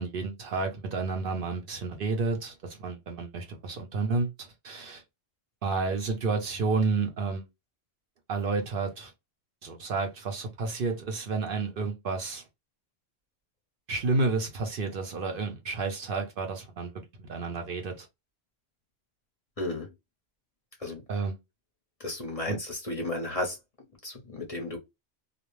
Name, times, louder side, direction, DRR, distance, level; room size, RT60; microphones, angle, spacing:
voice 1, 0.0-5.0 5.6-7.5 8.3-9.1 9.6-12.4 13.9-18.1 21.1-21.4 22.5-22.6, right 3 dB, 60° right, 0.7 m, -31 dB
voice 2, 19.6-19.9 20.8-21.0 22.0-23.6 24.0-24.8, left 2 dB, 35° left, 0.7 m, -33 dB
2.5 x 2.0 x 3.0 m
omnidirectional pair, 1.1 m